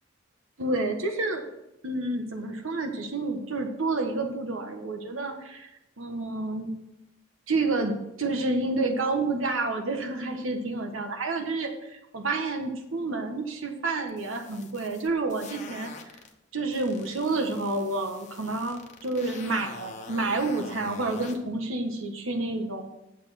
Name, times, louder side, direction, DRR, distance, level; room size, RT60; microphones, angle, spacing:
voice 1, 0.6-1.4 1.8-5.7 6.0-6.7 7.5-15.9 16.5-23.0, right 2 dB, 90° right, 4 dB, 1.4 m, -29 dB
sound 1, 14.1-16.3 16.7-21.4, left 3 dB, 35° left, 1.1 m, -45 dB
8.7 x 7.1 x 5.8 m, 0.88 s
head